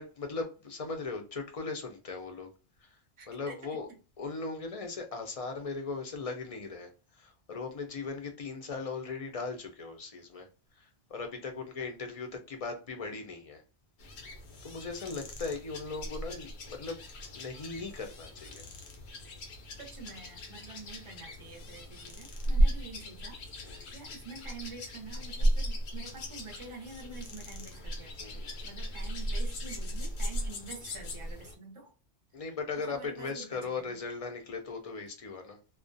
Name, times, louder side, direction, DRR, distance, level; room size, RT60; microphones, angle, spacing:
voice 1, 0.0-2.5 2.8-2.9 3.3-3.9 4.2-10.5 10.8-13.6 14.6-17.0 17.3-18.7 23.6-23.9 28.2-28.7 32.3-35.6, left 4 dB, 45° left, 0.5 m, -38 dB
voice 2, 3.2-3.8 19.8-28.3 28.6-31.9 32.5-34.0, right 4 dB, 35° right, 0.6 m, -47 dB
sound 1, 14.0-31.6, equal, 85° left, 0.9 m, -35 dB
2.3 x 2.1 x 2.5 m
omnidirectional pair, 1.1 m